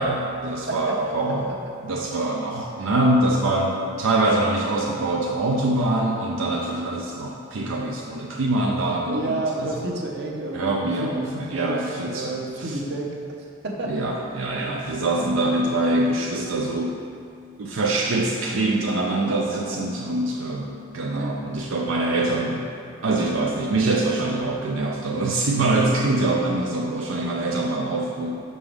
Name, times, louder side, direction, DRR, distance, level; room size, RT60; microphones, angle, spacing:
voice 1, 0.0-1.5 1.8-9.7 10.5-12.8 13.9-17.0 17.6-22.7 23.0-28.3, right 2 dB, 85° right, -1 dB, 0.5 m, -24 dB
voice 2, 9.1-13.1 13.6-13.9 14.5-14.7 15.2-15.4 21.1-21.4, right 2 dB, 60° right, -1 dB, 0.8 m, -30 dB
6.0 x 5.4 x 3.4 m, 2.5 s
head